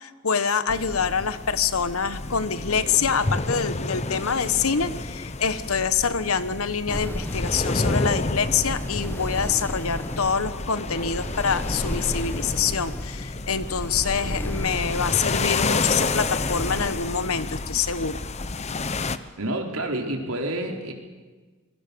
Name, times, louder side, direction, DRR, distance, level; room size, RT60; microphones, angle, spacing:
voice 1, 0.0-18.2, left 6 dB, 80° left, 13 dB, 1.2 m, -26 dB
sound 1, 0.7-19.2, left 3 dB, 30° left, 0.8 m, -30 dB
sound 2, 6.9-16.9, equal, 10° left, 1.3 m, -34 dB
voice 2, 19.4-20.9, right 1 dB, 85° right, 2 dB, 4.0 m, -28 dB
26.0 x 22.5 x 6.9 m, 1.3 s
head